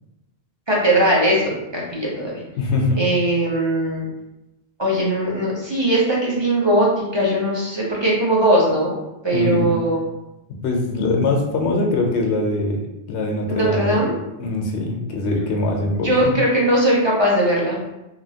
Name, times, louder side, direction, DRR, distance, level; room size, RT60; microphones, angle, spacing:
voice 1, 0.7-2.4 2.9-4.1 4.8-8.9 9.2-10.0 13.5-14.2 15.9-17.8, right 1 dB, 30° right, -4 dB, 0.5 m, -19 dB
voice 2, 2.6-3.0 9.3-9.7 10.6-12.8 13.1-14.1 14.4-16.3, left 2 dB, 80° left, 1 dB, 0.9 m, -22 dB
3.0 x 2.5 x 2.7 m, 0.94 s
omnidirectional pair, 1.1 m